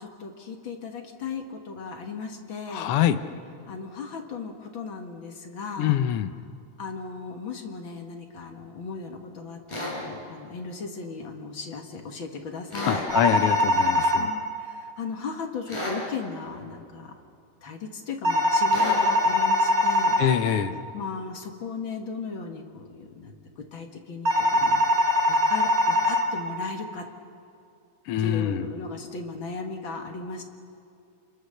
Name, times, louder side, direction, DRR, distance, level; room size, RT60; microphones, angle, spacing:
voice 1, 0.0-2.9 3.7-6.0 6.8-13.1 14.1-17.1 17.6-20.2 20.9-23.3 23.7-25.0 25.3-27.0 28.2-30.4, left 4 dB, 45° left, 3 dB, 2.0 m, -36 dB
voice 2, 2.7-3.2 5.8-6.3 12.9-14.3 20.2-20.8 28.1-28.6, left 10 dB, 80° left, 9 dB, 1.3 m, -24 dB
sound 1, 9.7-10.0 12.7-13.1 15.7-16.0 18.7-19.0, left 1 dB, 10° left, 6.2 m, -31 dB
sound 2, 13.1-14.2 18.2-20.2 24.2-26.2, left 1 dB, 35° right, 3.0 m, -22 dB
29.0 x 22.0 x 6.6 m, 2.5 s
omnidirectional pair, 3.6 m